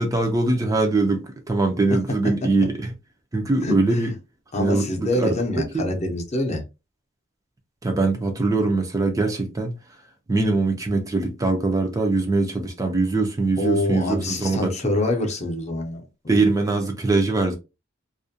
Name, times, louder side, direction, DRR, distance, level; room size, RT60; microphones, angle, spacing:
voice 1, 0.0-2.9 3.3-4.1 4.6-5.9 7.8-9.8 10.3-14.7 16.3-17.6, right 3 dB, 15° right, 0.4 m, -22 dB
voice 2, 3.6-4.1 4.5-6.6 13.6-16.4, left 2 dB, 35° left, 0.6 m, -26 dB
2.4 x 2.1 x 2.6 m
head